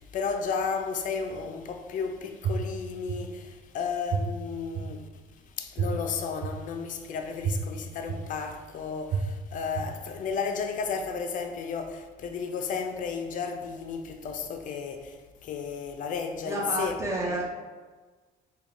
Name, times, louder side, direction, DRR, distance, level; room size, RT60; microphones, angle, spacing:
voice 1, 0.0-16.9 17.3-17.4, left 5 dB, 50° left, 0.4 m, -33 dB
sound 1, 2.4-2.5 3.1-3.2 4.1-4.2 4.7-4.8 5.8-5.9 6.4-6.5 7.4-7.5 8.1-8.2 9.1-9.2 9.7-9.8, right 9 dB, 45° right, 0.4 m, -27 dB
voice 2, 16.4-17.4, right 1 dB, 15° right, 0.8 m, -30 dB
3.5 x 2.3 x 3.4 m
cardioid pair, 110°, 17 cm